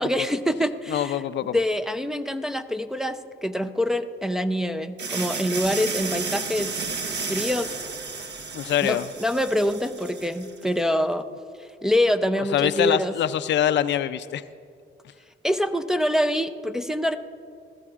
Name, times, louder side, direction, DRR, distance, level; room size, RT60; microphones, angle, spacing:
voice 1, 0.0-1.2 1.5-6.7 7.3-7.7 8.8-11.2 11.8-13.1 15.4-17.2, equal, ahead, 6 dB, 0.5 m, -25 dB
voice 2, 0.9-1.6 8.5-9.1 12.5-14.4, left 11 dB, 65° left, 12 dB, 0.4 m, -24 dB
sound 1, 5.0-10.7, right 4 dB, 60° right, 1.2 m, -32 dB
21.0 x 15.0 x 2.4 m, 2.3 s
cardioid pair, 90°, 20 cm